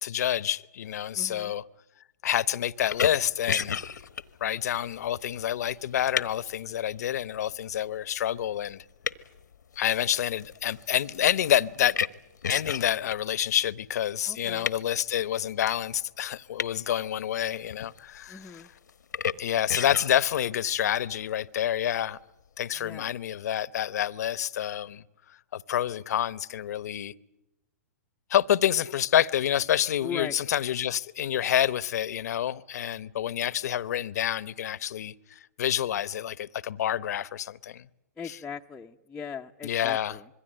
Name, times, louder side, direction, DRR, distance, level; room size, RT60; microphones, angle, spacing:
voice 1, 0.0-1.6 2.2-3.8 4.4-8.8 9.8-12.0 12.5-18.6 19.4-22.2 22.6-25.0 25.5-27.1 28.3-37.8 38.3-38.4 39.6-40.2, left 11 dB, 65° left, 1.0 m, -28 dB
voice 2, 1.1-1.5 14.3-14.7 18.3-18.7 22.8-23.1 30.0-30.4 38.2-40.3, left 6 dB, 10° left, 0.9 m, -38 dB
sound 1, 2.9-6.5 7.1-7.5 8.2-8.4 8.6-13.2 14.1-14.8 16.6-16.8 17.1-18.2 18.4-19.3 19.7-20.4, left 7 dB, 85° left, 1.2 m, -32 dB
26.5 x 22.5 x 9.0 m
hypercardioid pair, 130°, 10 cm